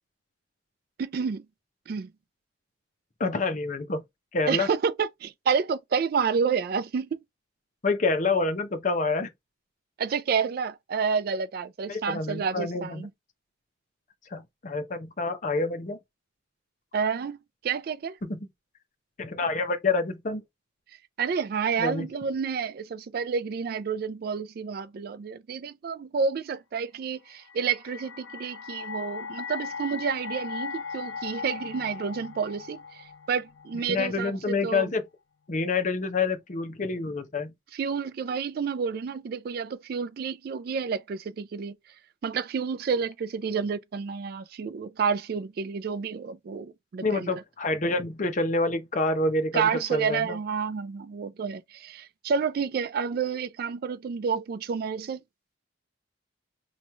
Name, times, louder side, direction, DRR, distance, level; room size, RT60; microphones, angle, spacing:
voice 1, 1.0-1.4 1.9-2.1 4.5-7.2 10.0-13.1 16.9-17.4 17.6-18.2 21.2-33.0 33.3-34.9 37.7-41.7 42.2-47.3 49.5-55.2, right 6 dB, 50° right, 0.3 m, -29 dB
voice 2, 3.2-4.0 4.3-4.7 7.8-9.3 11.9-13.1 14.3-16.0 18.2-18.5 19.2-20.4 21.8-22.1 33.9-35.1 35.5-37.5 47.0-50.4, left 3 dB, 40° left, 0.6 m, -27 dB
sound 1, 27.3-34.4, left 5 dB, 80° left, 0.5 m, -38 dB
3.0 x 2.3 x 4.1 m
head